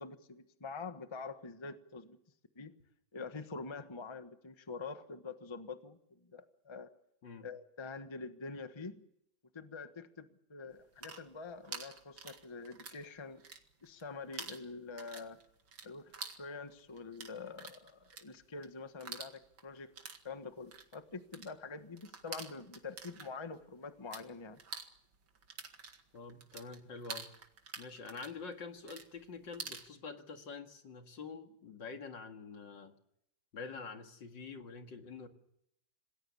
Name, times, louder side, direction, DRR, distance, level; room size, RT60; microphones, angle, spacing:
voice 1, 0.0-2.2 2.5-2.7 3.1-6.9 7.4-9.1 9.5-13.4 13.8-15.4 15.8-19.9 20.2-24.6, left 4 dB, 15° left, 9 dB, 1.1 m, -46 dB
sound 1, 10.8-13.1 13.3-14.0 14.3-24.2 24.5-29.9, right 5 dB, 80° right, 2.7 m, -48 dB
voice 2, 26.1-27.3 27.8-32.9 33.5-35.3, left 4 dB, 70° left, 5 dB, 2.6 m, -46 dB
27.0 x 20.0 x 7.1 m, 0.77 s
omnidirectional pair, 2.1 m